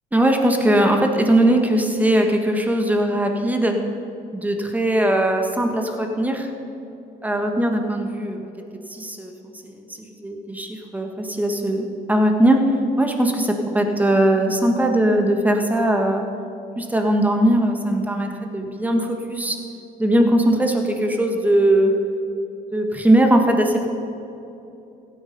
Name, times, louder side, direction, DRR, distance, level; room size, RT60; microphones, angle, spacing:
voice 1, 0.1-3.8 4.3-6.5 7.2-8.5 8.9-9.3 9.6-12.6 13.0-16.3 16.8-19.6 20.0-21.9 22.7-23.9, right 1 dB, 10° right, 4 dB, 1.5 m, -20 dB
15.5 x 9.0 x 5.4 m, 2.9 s
cardioid pair, 110°, 17 cm